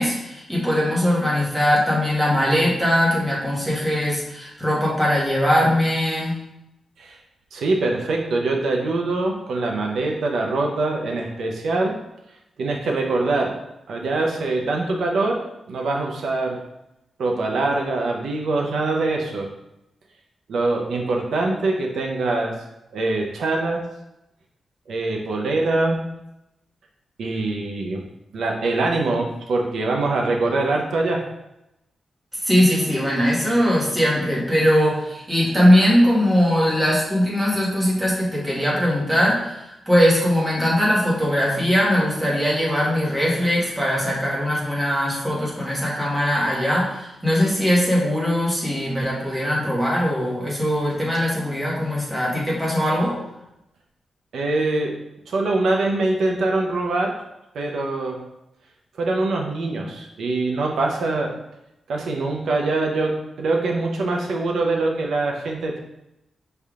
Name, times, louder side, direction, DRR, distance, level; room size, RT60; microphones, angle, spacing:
voice 1, 0.0-6.4 32.4-53.1, equal, 5° right, -5 dB, 1.2 m, -20 dB
voice 2, 7.5-11.9 12.6-13.5 13.9-15.4 15.7-16.6 17.2-19.5 20.5-22.5 22.9-23.8 24.9-26.0 27.2-28.0 28.3-31.2 54.3-54.9 55.3-57.1 57.5-58.2 59.0-61.3 61.9-65.8, right 2 dB, 80° right, 1 dB, 0.5 m, -23 dB
5.4 x 3.4 x 2.4 m, 0.88 s
wide cardioid pair, 155°, 0 cm